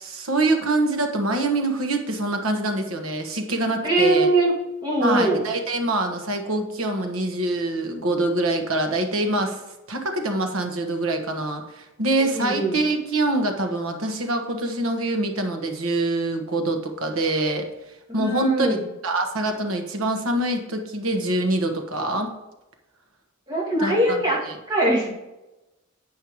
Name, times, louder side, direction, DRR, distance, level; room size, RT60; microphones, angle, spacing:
voice 1, 0.0-4.3 5.0-9.6 9.9-17.7 18.1-18.7 19.0-22.3 23.8-24.2, right 2 dB, 80° right, 4 dB, 1.3 m, -25 dB
voice 2, 3.8-4.5 4.8-5.4 12.3-12.8 18.1-18.8 23.5-24.4 24.7-25.1, right 1 dB, 20° right, -4 dB, 2.0 m, -21 dB
8.6 x 5.6 x 4.6 m, 1.0 s
head